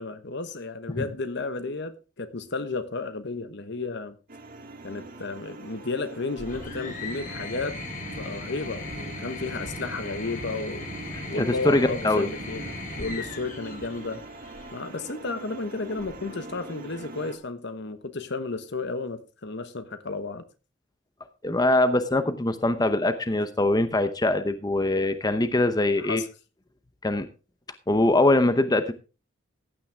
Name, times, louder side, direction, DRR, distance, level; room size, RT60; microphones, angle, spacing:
voice 1, 0.0-4.2 4.8-7.8 8.2-10.9 11.3-14.2 14.7-20.4 26.0-26.3, left 3 dB, 65° left, 1.1 m, -33 dB
sound 1, 4.3-17.4, right 2 dB, 50° right, 1.8 m, -43 dB
sound 2, 6.4-14.8 16.0-16.6, left 2 dB, 45° left, 2.8 m, -38 dB
voice 2, 11.1-12.3 21.4-26.2 27.0-27.3 27.9-28.9, left 2 dB, 20° left, 0.8 m, -23 dB
15.5 x 9.0 x 3.4 m
head